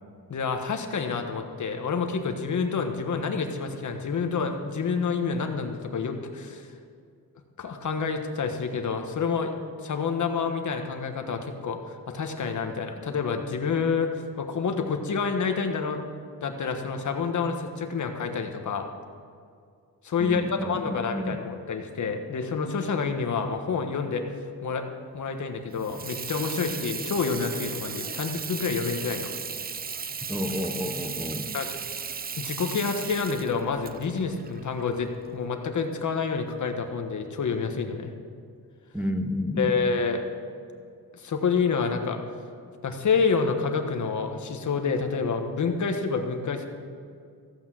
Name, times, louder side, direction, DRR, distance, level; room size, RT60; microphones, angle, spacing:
voice 1, 0.3-6.7 7.6-9.5 9.8-16.0 16.4-18.9 20.0-24.2 24.6-24.8 25.1-29.3 31.5-31.7 32.4-38.1 39.6-40.2 41.1-42.2 42.8-46.7, left 5 dB, 50° left, 5 dB, 1.4 m, -28 dB
voice 2, 20.2-21.4 30.3-31.5 38.9-39.9, left 1 dB, 5° right, 3 dB, 0.9 m, -31 dB
Water tap faucet / Sink (filling or washing), 25.7-35.3, right 6 dB, 25° right, 0.4 m, -36 dB
15.0 x 8.8 x 7.6 m, 2.3 s
wide cardioid pair, 135°, 37 cm